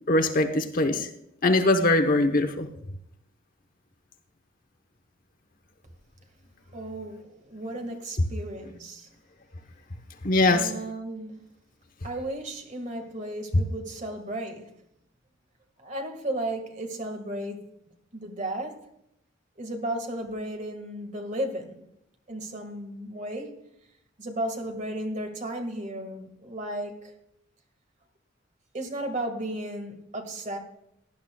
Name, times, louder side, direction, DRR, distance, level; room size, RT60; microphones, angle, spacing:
voice 1, 0.1-1.1 1.4-2.7 10.2-10.7, left 2 dB, 45° left, 0.9 m, -22 dB
voice 2, 6.7-9.1 10.5-11.4 12.0-14.7 15.8-17.7 18.1-18.9 19.6-21.8 22.3-23.6 24.2-27.1 28.7-30.6, right 1 dB, 40° right, 1.7 m, -34 dB
17.5 x 11.0 x 2.3 m
head